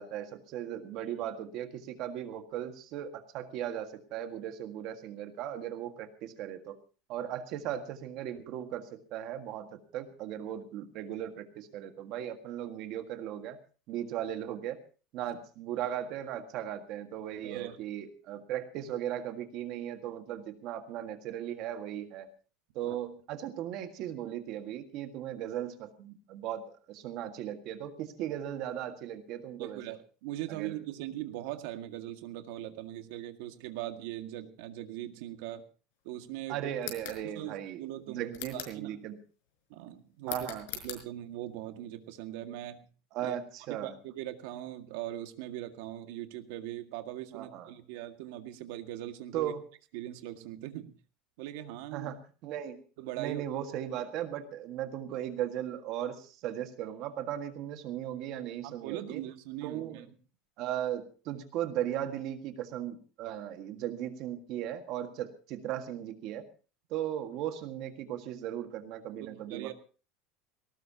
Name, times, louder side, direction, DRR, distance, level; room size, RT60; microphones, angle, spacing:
voice 1, 0.0-6.8 7.1-13.6 13.9-14.8 15.1-22.3 22.8-29.8 30.5-30.8 36.5-39.2 40.3-40.7 43.1-43.9 47.3-47.7 49.3-49.6 51.9-52.8 53.2-59.2 59.6-60.0 60.6-66.5 66.9-69.7, right 11 dB, 45° right, 7 dB, 1.7 m, -37 dB
voice 2, 17.4-17.8 22.9-23.0 29.6-35.6 36.0-36.7 37.2-39.0 39.7-40.4 40.8-42.9 43.2-43.4 43.7-49.5 49.9-50.9 51.4-52.1 53.0-53.4 58.6-60.1 69.2-69.7, right 13 dB, 65° right, 7 dB, 1.9 m, -40 dB
sound 1, 36.8-37.2 38.3-38.8 40.2-41.0, left 10 dB, 75° left, 4.9 m, -41 dB
18.5 x 18.5 x 2.9 m, 0.36 s
cardioid pair, 170°, 0 cm